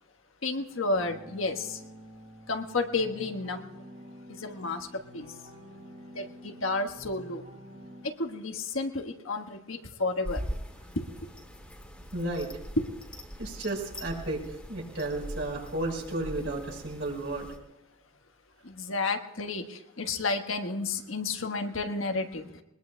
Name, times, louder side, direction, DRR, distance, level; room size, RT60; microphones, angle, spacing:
voice 1, 0.4-1.8 2.5-3.7 4.3-5.3 6.1-7.4 8.0-10.4 10.9-11.3 12.8-12.9 18.6-22.6, left 3 dB, 90° left, 5 dB, 1.4 m, -31 dB
sound 1, 0.7-8.0, equal, 45° right, 3.9 m, -49 dB
sound 2, 10.2-17.6, equal, 5° left, 1.9 m, -41 dB
voice 2, 12.1-12.5 13.4-14.4 14.7-17.5, right 2 dB, 65° right, -1 dB, 4.6 m, -33 dB
22.0 x 21.0 x 2.3 m, 0.98 s
head